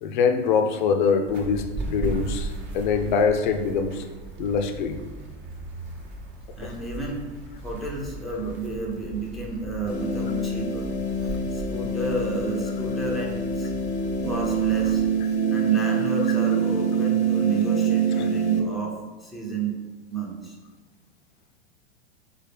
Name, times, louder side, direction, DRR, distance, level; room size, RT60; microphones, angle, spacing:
voice 1, 0.0-4.1 4.4-5.0 6.6-6.7 16.4-16.5 18.1-18.3, left 5 dB, 50° left, 6 dB, 0.5 m, -24 dB
sound 1, 1.3-15.1, right 2 dB, 35° right, 0.9 m, -37 dB
voice 2, 6.6-7.2 7.6-10.9 11.2-13.7 14.2-15.0 15.5-19.0 19.2-19.8 20.1-20.6, right 3 dB, ahead, -2 dB, 0.6 m, -31 dB
sound 2, 9.9-18.6, right 5 dB, 80° left, 0.8 m, -25 dB
3.8 x 3.8 x 3.4 m, 1.3 s
figure-of-eight pair, 95°, 32 cm